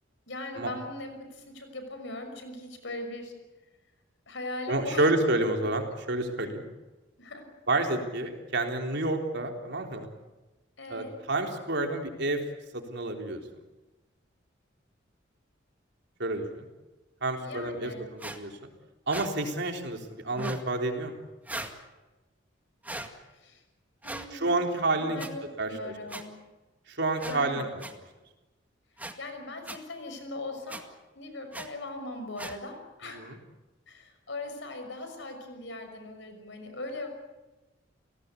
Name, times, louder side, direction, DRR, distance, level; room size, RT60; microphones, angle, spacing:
voice 1, 0.3-3.4 4.3-5.7 7.2-7.5 10.8-11.2 17.4-18.1 23.3-23.6 24.0-24.6 25.0-26.4 27.2-27.8 29.2-30.8 31.2-33.2 33.9-37.1, left 2 dB, 70° left, 6 dB, 6.0 m, -40 dB
voice 2, 4.7-5.8 6.1-6.7 7.7-10.1 10.9-12.4 12.7-13.4 16.2-16.7 17.2-18.5 19.1-21.2 24.3-25.2 25.6-25.9 26.9-27.8 33.1-33.4, right 2 dB, 60° right, 3 dB, 3.8 m, -29 dB
sound 1, 18.2-18.4 19.1-19.3 20.3-20.6 21.5-21.8 22.8-23.1 24.0-24.3 25.2-25.3 26.1-26.2 27.2-27.4 27.8-27.9 29.0-29.1 29.7-29.8 30.7-30.8 31.5-31.7 32.4-32.6, right 1 dB, 10° right, 1.9 m, -38 dB
30.0 x 18.0 x 8.5 m, 1.1 s
head